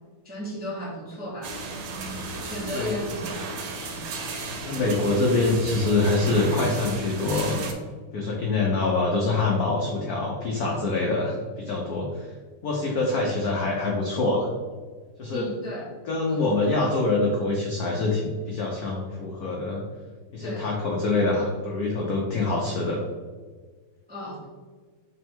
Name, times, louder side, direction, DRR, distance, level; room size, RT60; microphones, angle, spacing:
voice 1, 0.2-1.5 2.4-3.5 3.9-4.1 15.3-15.9 16.3-16.5 20.4-20.7 24.1-24.4, equal, 15° right, -6 dB, 0.3 m, -35 dB
sound 1, 1.4-7.7, right 3 dB, 90° right, 1.6 m, -34 dB
voice 2, 4.6-7.6 8.1-12.3 12.6-14.5 15.2-15.5 16.0-19.8 20.3-23.0, left 2 dB, 85° left, -1 dB, 0.8 m, -25 dB
3.5 x 3.3 x 4.4 m, 1.5 s
omnidirectional pair, 2.4 m